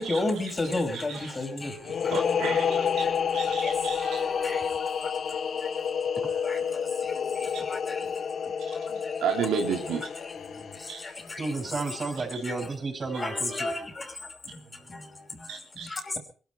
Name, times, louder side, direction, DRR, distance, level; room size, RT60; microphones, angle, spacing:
voice 1, 0.0-2.2 2.9-3.1 3.5-6.0 6.4-9.2 10.2-11.8 12.4-12.7 13.1-16.2, left 2 dB, 30° left, 4 dB, 5.5 m, -35 dB
voice 2, 0.9-1.3 2.1-4.2 8.7-8.8 9.2-10.1 10.9-11.0 15.5-15.9, right 6 dB, 75° right, 2 dB, 3.4 m, -32 dB
sound 1, 1.8-11.4, left 7 dB, 55° left, 1.0 m, -29 dB
sound 2, 2.6-4.2 4.5-4.6, equal, ahead, 3.4 m, -44 dB
voice 3, 11.4-13.7, right 3 dB, 45° right, 2 dB, 6.5 m, -32 dB
22.0 x 13.5 x 4.6 m, 0.40 s
hypercardioid pair, 50°, 0 cm